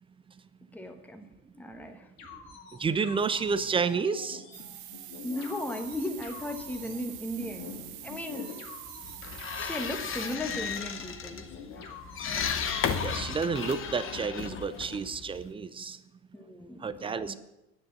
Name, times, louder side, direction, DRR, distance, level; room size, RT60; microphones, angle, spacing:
voice 1, 0.7-1.2 1.5-2.1 5.2-7.7 8.0-8.7 9.5-11.5 11.8-11.9 16.3-17.3, left 1 dB, 5° left, 5 dB, 1.2 m, -36 dB
sound 1, 2.2-15.0, left 5 dB, 70° left, 2.2 m, -47 dB
voice 2, 2.8-4.4 13.0-16.0 16.8-17.3, right 5 dB, 15° right, 14 dB, 0.4 m, -30 dB
sound 2, 4.5-10.4, right 13 dB, 55° right, 1.1 m, -45 dB
sound 3, 9.0-15.5, left 7 dB, 30° left, 0.9 m, -34 dB
10.0 x 6.7 x 7.2 m, 0.93 s
hypercardioid pair, 90°, 43 cm